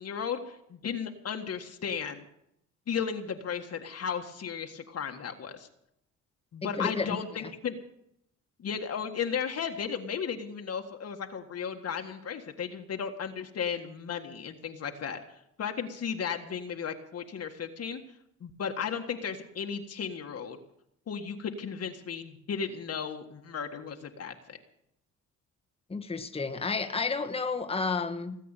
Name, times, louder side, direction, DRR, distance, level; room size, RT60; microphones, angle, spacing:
voice 1, 0.0-2.2 2.9-5.7 6.5-7.8 8.6-15.2 15.6-18.0 18.4-20.6 21.1-24.6, left 7 dB, 55° left, 4 dB, 1.7 m, -35 dB
voice 2, 6.6-7.2 25.9-28.4, left 4 dB, 20° left, 7 dB, 1.3 m, -31 dB
18.5 x 8.3 x 8.9 m, 0.76 s
cardioid pair, 90°, 30 cm